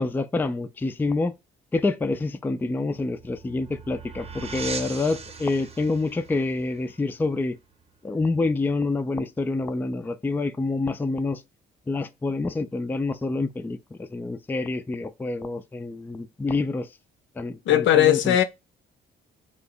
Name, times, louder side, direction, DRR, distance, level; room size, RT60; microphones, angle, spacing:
voice 1, 0.0-1.3 1.7-7.6 8.0-11.4 11.9-16.9 17.4-18.4, left 3 dB, 10° left, 0.3 m, -27 dB
sound 1, 2.7-8.1, right 5 dB, 30° right, 0.7 m, -40 dB
voice 2, 17.7-18.4, left 11 dB, 70° left, 0.5 m, -18 dB
3.8 x 2.0 x 3.6 m
cardioid pair, 90°, 20 cm